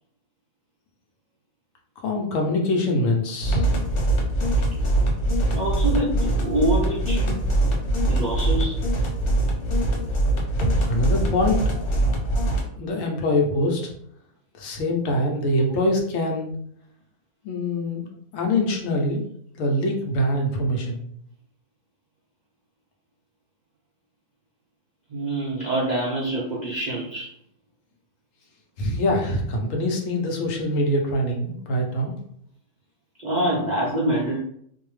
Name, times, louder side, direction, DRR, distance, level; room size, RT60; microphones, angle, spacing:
voice 1, 2.0-3.7 10.8-11.6 12.8-13.9 14.6-16.5 17.4-18.1 18.3-19.2 19.6-21.0 28.8-32.2, left 1 dB, 70° left, 1 dB, 0.9 m, -24 dB
sound 1, 3.4-12.6, right 1 dB, 85° left, 1.2 m, -22 dB
voice 2, 5.5-7.4 8.1-8.8 25.1-27.3 33.2-34.4, right 1 dB, 70° right, -5 dB, 0.4 m, -25 dB
2.6 x 2.0 x 3.1 m, 0.67 s
omnidirectional pair, 1.5 m